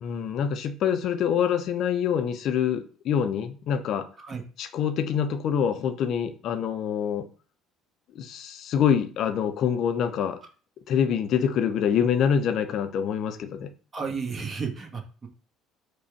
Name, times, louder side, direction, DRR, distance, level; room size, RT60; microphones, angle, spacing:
voice 1, 0.0-4.1 4.6-7.3 8.1-10.4 10.9-13.7, left 8 dB, 50° left, 0.6 m, -25 dB
voice 2, 13.9-15.3, right 5 dB, 30° right, 1.3 m, -33 dB
4.8 x 2.4 x 4.5 m
figure-of-eight pair, 55°, 0 cm